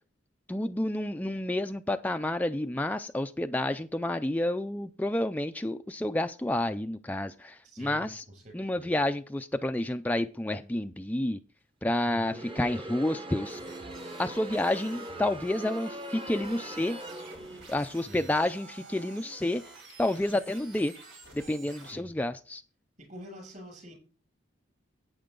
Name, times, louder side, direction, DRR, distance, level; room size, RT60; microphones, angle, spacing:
voice 1, 0.5-8.2 8.5-11.4 11.8-13.6 14.2-17.0 17.7-19.6 20.0-20.9 21.3-22.6, left 1 dB, 10° left, 0.4 m, -30 dB
voice 2, 7.6-9.0 12.1-12.4 17.9-18.3 21.8-22.1 23.0-23.9, equal, 45° right, 6.4 m, -47 dB
Crowd, 12.1-17.9, right 1 dB, 25° right, 1.1 m, -41 dB
sound 1, 13.4-21.9, right 2 dB, 80° right, 5.0 m, -49 dB
12.0 x 8.8 x 3.8 m
head